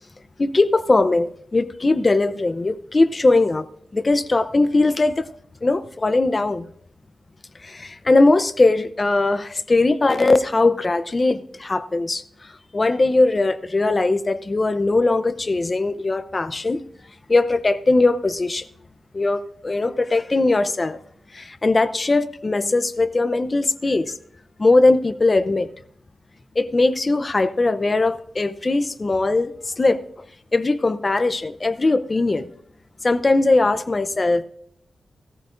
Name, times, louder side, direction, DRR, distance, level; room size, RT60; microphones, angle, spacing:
voice 1, 0.4-3.7 3.9-5.3 5.6-6.7 7.6-16.8 17.3-18.7 19.1-21.0 21.3-24.1 24.6-25.7 26.6-30.2 30.5-32.5 33.0-34.4, left 2 dB, 30° left, 13 dB, 0.6 m, -20 dB
16.5 x 14.0 x 2.6 m, 0.67 s
wide cardioid pair, 105°, 0 cm